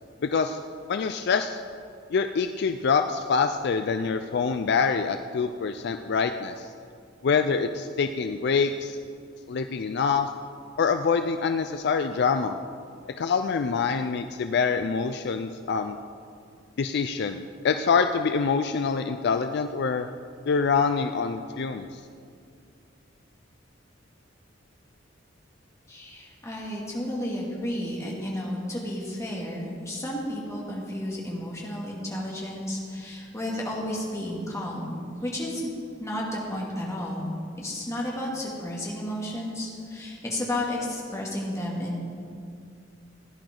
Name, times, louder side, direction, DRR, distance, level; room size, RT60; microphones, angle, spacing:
voice 1, 0.2-0.6 0.9-1.6 2.1-6.7 7.2-9.0 9.5-10.3 10.8-12.6 13.2-16.0 16.8-20.1 20.5-22.0, left 5 dB, 60° left, 8 dB, 0.4 m, -25 dB
voice 2, 25.9-35.7 36.0-42.1, left 1 dB, 15° left, -4 dB, 2.5 m, -32 dB
17.0 x 10.5 x 3.9 m, 2.4 s
head